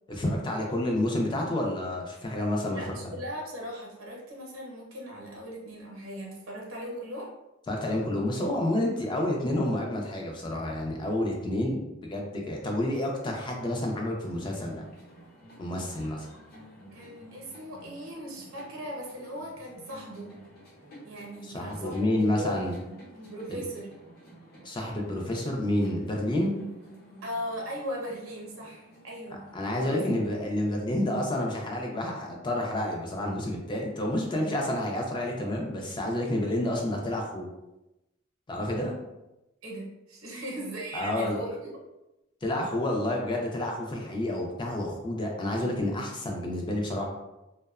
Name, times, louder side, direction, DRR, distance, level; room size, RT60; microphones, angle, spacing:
voice 1, 0.1-3.1 7.7-14.8 15.6-16.3 21.4-22.8 23.5-23.6 24.6-26.5 29.5-37.5 38.5-38.9 40.9-41.4 42.4-47.0, left 1 dB, 25° left, 0 dB, 0.4 m, -29 dB
voice 2, 2.7-7.3 16.9-20.3 21.0-22.6 22.9-23.0 23.2-23.9 27.2-29.5 29.9-30.0 39.6-41.7, equal, 75° right, -1 dB, 0.7 m, -38 dB
sound 1, 14.2-29.6, equal, 50° left, 0.8 m, -51 dB
2.6 x 2.1 x 2.3 m, 0.95 s
head